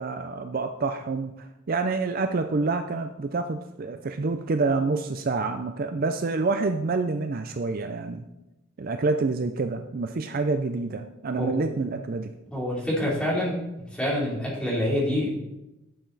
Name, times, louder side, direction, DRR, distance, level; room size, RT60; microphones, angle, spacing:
voice 1, 0.0-8.3 8.8-12.3, right 3 dB, 45° right, 8 dB, 0.5 m, -27 dB
voice 2, 12.5-13.6 13.9-15.3, left 1 dB, 5° left, -6 dB, 3.2 m, -26 dB
11.5 x 6.9 x 4.0 m, 0.95 s
head